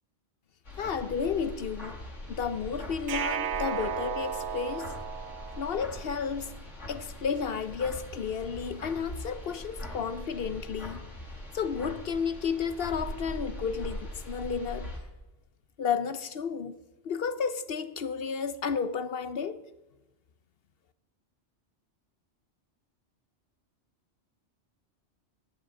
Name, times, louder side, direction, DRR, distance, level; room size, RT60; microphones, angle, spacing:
sound 1, 0.7-15.0, left 1 dB, 85° left, 4.3 m, -41 dB
voice 1, 0.8-1.9 2.3-4.9 5.6-6.5 6.9-11.1 11.5-14.9 15.8-16.7 17.0-19.6, left 6 dB, 60° left, 0.8 m, -32 dB
sound 2, 3.1-6.2, right 8 dB, 75° right, 1.1 m, -34 dB
11.5 x 7.8 x 9.7 m
omnidirectional pair, 1.2 m